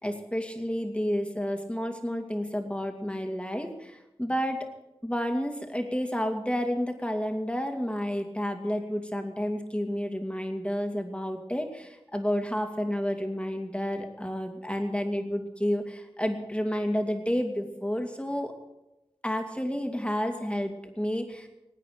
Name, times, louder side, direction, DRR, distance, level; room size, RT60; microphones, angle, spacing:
voice 1, 0.0-4.7 5.0-18.5 19.2-21.5, equal, 10° left, 4 dB, 2.3 m, -30 dB
20.0 x 9.1 x 6.7 m, 0.96 s
wide cardioid pair, 45°, 10 cm